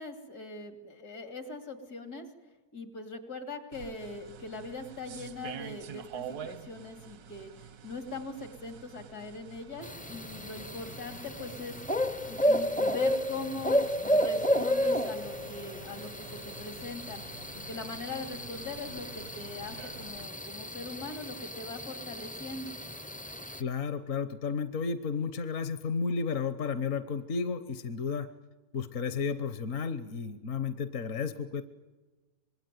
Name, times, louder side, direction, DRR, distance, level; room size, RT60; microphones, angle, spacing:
voice 1, 0.0-2.3 2.7-7.5 7.8-12.0 12.3-17.2 17.5-22.7, left 3 dB, 80° left, 5 dB, 3.5 m, -41 dB
sound 1, 3.7-20.3, right 9 dB, 85° right, 1.6 m, -48 dB
sound 2, 9.8-23.6, equal, 15° left, 0.3 m, -32 dB
voice 2, 23.6-28.3 28.7-31.6, left 5 dB, 60° left, 11 dB, 1.3 m, -32 dB
25.5 x 20.5 x 9.4 m, 1.2 s
omnidirectional pair, 1.6 m